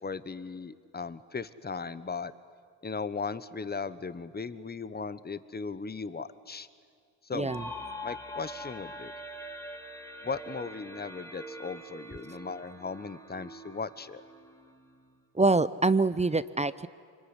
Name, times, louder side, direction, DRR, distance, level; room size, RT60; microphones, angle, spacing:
voice 1, 0.0-2.3 2.8-6.7 7.2-7.6 8.0-9.1 10.2-14.2, left 4 dB, 20° left, 14 dB, 1.1 m, -37 dB
voice 2, 7.3-7.6 15.3-16.9, right 3 dB, 15° right, 16 dB, 0.6 m, -25 dB
sound 1, 7.5-15.1, equal, 5° left, 2.5 m, -44 dB
24.5 x 22.0 x 9.9 m, 2.2 s
supercardioid pair, 70°, 44 cm